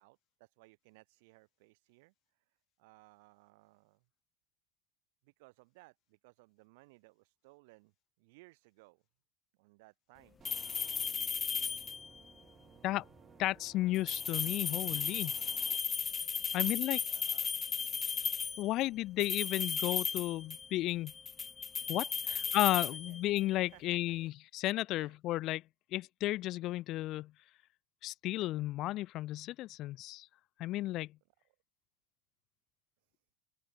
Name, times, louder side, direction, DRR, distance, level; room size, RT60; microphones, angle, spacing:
voice 1, 0.0-4.0 5.2-9.0 9.6-10.4 16.4-16.7 17.0-17.5 18.1-18.3 22.2-22.6 22.9-23.2 23.7-24.0 24.9-25.1 31.5-31.6 33.0-33.2, right 25 dB, 75° right, 6.0 m, -62 dB
sound 1, 10.4-12.2 13.9-18.7 19.2-20.8 21.1-23.5, left 5 dB, 25° left, 0.5 m, -35 dB
sound 2, 10.4-15.8, right 8 dB, 35° right, 5.3 m, -59 dB
voice 2, 13.4-15.3 16.5-17.0 18.6-21.1 21.9-25.6 25.9-27.3 28.0-30.3 30.6-31.1, left 16 dB, 55° left, 1.7 m, -33 dB
open air
supercardioid pair, 100°, 0 cm